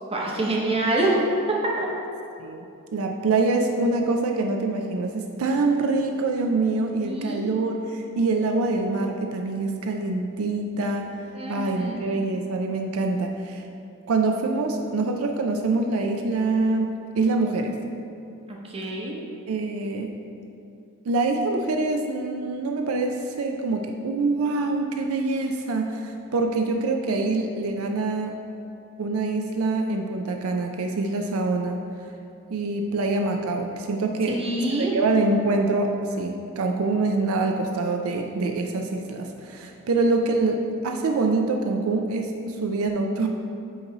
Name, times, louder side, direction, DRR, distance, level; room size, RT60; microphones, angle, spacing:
voice 1, 0.1-1.2 1.6-1.9 7.0-7.5 11.3-12.2 18.5-19.2 34.3-34.9, right 2 dB, 25° right, -3 dB, 0.8 m, -26 dB
voice 2, 2.9-11.1 11.5-13.6 14.1-16.9 17.2-17.8 19.5-20.1 21.1-28.3 29.0-31.8 32.5-34.4 34.8-43.3, right 3 dB, 75° right, 3 dB, 0.4 m, -25 dB
8.8 x 3.1 x 3.9 m, 2.6 s
head